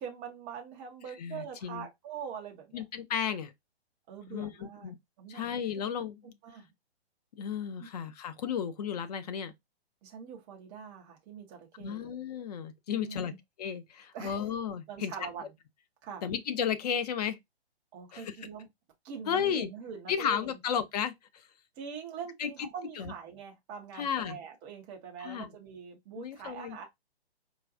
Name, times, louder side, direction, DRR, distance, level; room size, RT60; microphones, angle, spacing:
voice 1, 0.0-2.8 4.1-4.9 5.2-5.4 6.4-6.7 7.8-7.9 10.0-12.1 12.9-13.4 14.1-14.4 14.9-15.5 16.0-16.3 17.9-18.7 19.0-20.6 21.8-26.8, right 7 dB, 10° right, 0.4 m, -43 dB
voice 2, 1.2-1.9 2.7-3.5 4.3-4.9 5.3-6.2 7.4-9.5 11.8-13.3 13.6-15.1 16.2-17.4 18.1-18.5 19.3-19.7 20.1-21.5 22.4-22.7 23.0-23.1 23.9-24.4 25.2-25.5 26.2-26.9, left 8 dB, 40° left, 0.6 m, -33 dB
4.6 x 2.2 x 2.5 m
hypercardioid pair, 135°, 33 cm